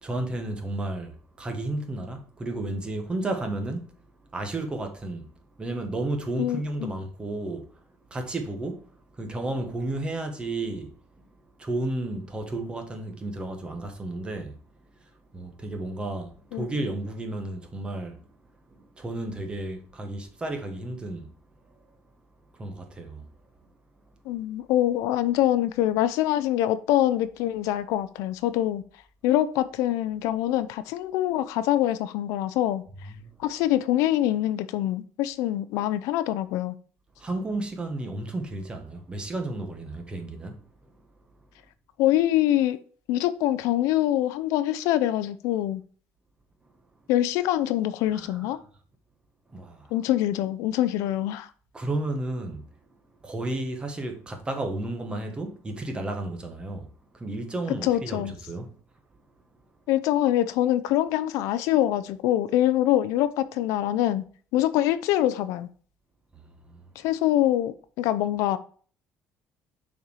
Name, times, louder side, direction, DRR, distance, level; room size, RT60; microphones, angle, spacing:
voice 1, 0.0-3.9 4.3-5.3 5.6-7.7 8.1-8.9 9.2-11.2 11.6-14.6 15.3-18.2 18.8-21.3 21.7-21.8 22.5-23.3 33.1-33.3 37.2-40.6 48.1-48.5 49.5-49.9 51.7-52.7 53.2-56.9 57.1-58.7 66.3-66.9, right 2 dB, 20° right, 1.4 m, -32 dB
voice 2, 6.4-6.9 16.5-16.7 24.3-28.8 29.2-32.8 33.4-36.7 42.0-42.8 43.1-45.8 47.1-48.6 49.9-51.5 57.8-58.3 59.9-64.2 64.5-65.7 67.0-68.6, left 13 dB, 85° left, 0.6 m, -24 dB
6.5 x 4.5 x 4.8 m
cardioid pair, 135°, 5 cm